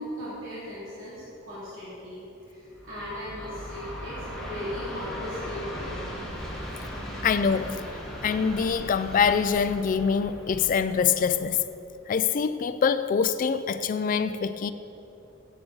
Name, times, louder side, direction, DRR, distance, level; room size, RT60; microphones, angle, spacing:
voice 1, 0.0-5.9, equal, 75° right, -9 dB, 2.6 m, -38 dB
Train, 2.7-11.9, equal, ahead, 1.8 m, -38 dB
voice 2, 7.2-7.8 8.2-11.7 12.1-14.7, left 6 dB, 45° left, 11 dB, 0.3 m, -24 dB
15.0 x 8.3 x 3.9 m, 3.0 s
head